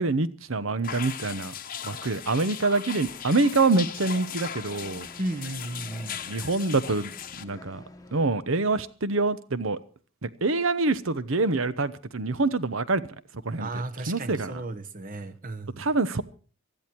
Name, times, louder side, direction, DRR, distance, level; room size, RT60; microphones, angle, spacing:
voice 1, 0.0-1.5 1.8-5.1 6.3-7.1 7.4-7.8 8.1-9.8 10.2-13.0 13.4-13.7 14.1-14.5 15.8-16.2, right 3 dB, 65° right, 0.9 m, -25 dB
sound 1, 0.8-7.4, left 9 dB, 40° left, 1.0 m, -38 dB
sound 2, 3.0-8.3, left 1 dB, 15° left, 1.1 m, -49 dB
voice 2, 5.2-6.2 13.6-15.9, right 2 dB, 40° right, 1.2 m, -34 dB
19.5 x 13.5 x 4.6 m
head